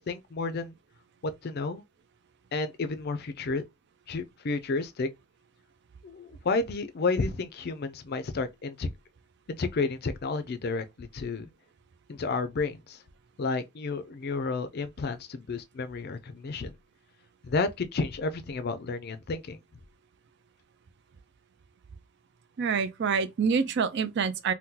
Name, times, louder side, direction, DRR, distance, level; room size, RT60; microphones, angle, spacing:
voice 1, 0.1-0.7 1.4-1.8 2.5-3.6 4.1-5.1 6.0-8.9 9.5-11.5 12.1-13.0 13.4-16.7 17.5-19.6, left 3 dB, 45° left, 0.4 m, -31 dB
voice 2, 22.6-24.5, right 5 dB, 55° right, 0.4 m, -26 dB
2.8 x 2.2 x 3.7 m
head